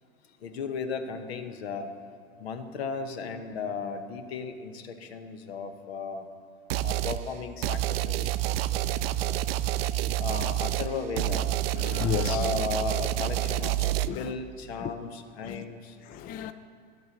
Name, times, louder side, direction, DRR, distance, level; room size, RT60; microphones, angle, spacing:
voice 1, 0.4-1.9 2.4-6.3 6.8-8.4 8.7-9.4 10.2-11.5 12.3-13.9 14.1-15.9, left 5 dB, 75° left, 1.0 m, -35 dB
sound 1, 6.7-7.2 7.6-14.1, right 13 dB, 70° right, 0.5 m, -28 dB
voice 2, 11.7-12.5 14.1-14.3 14.8-14.9 15.4-15.6 16.1-16.5, left 11 dB, 30° left, 0.4 m, -33 dB
11.5 x 7.9 x 5.3 m
hypercardioid pair, 100°, 31 cm